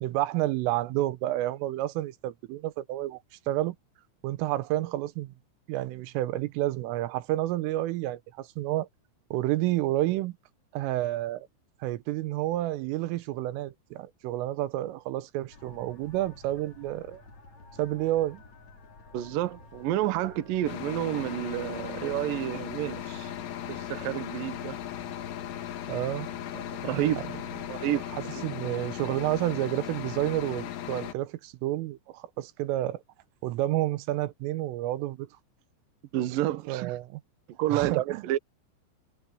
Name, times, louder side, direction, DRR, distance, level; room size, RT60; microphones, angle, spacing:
voice 1, 0.0-3.2 3.5-3.8 4.2-5.3 5.7-8.9 9.3-10.4 10.7-11.5 11.8-17.2 17.8-18.4 25.9-26.3 27.6-27.7 28.1-33.0 33.4-35.3 36.7-37.2 37.7-38.2, right 15 dB, 90° right, 3.6 m, -30 dB
sound 1, 15.5-27.8, left 3 dB, 35° left, 6.1 m, -51 dB
voice 2, 19.1-23.3 23.7-24.8 25.9-26.0 26.5-27.2 27.7-28.0 36.1-36.9 37.6-38.4, right 14 dB, 75° right, 2.1 m, -29 dB
sound 2, 20.7-31.1, left 11 dB, 90° left, 4.6 m, -37 dB
omnidirectional pair, 5.6 m